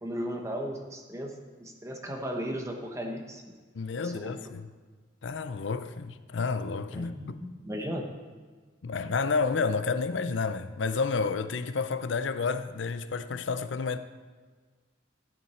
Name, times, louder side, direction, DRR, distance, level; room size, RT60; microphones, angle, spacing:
voice 1, 0.0-1.3 1.6-3.4 4.0-4.4 6.9-8.0, equal, 15° right, 1.1 m, -36 dB
voice 2, 3.7-4.7 5.2-7.4 8.8-14.0, left 4 dB, 75° left, 0.5 m, -30 dB
13.0 x 8.2 x 4.4 m
head